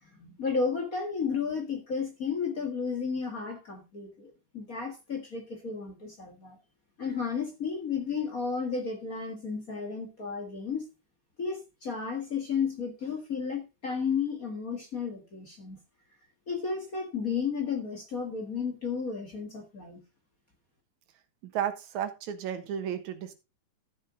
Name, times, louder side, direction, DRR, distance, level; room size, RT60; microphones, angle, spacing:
voice 1, 0.0-6.6 7.0-10.8 11.4-15.8 16.5-20.0, left 5 dB, 35° left, 1.7 m, -33 dB
voice 2, 21.5-23.3, right 9 dB, 75° right, 2.6 m, -33 dB
13.0 x 7.3 x 3.9 m
omnidirectional pair, 3.4 m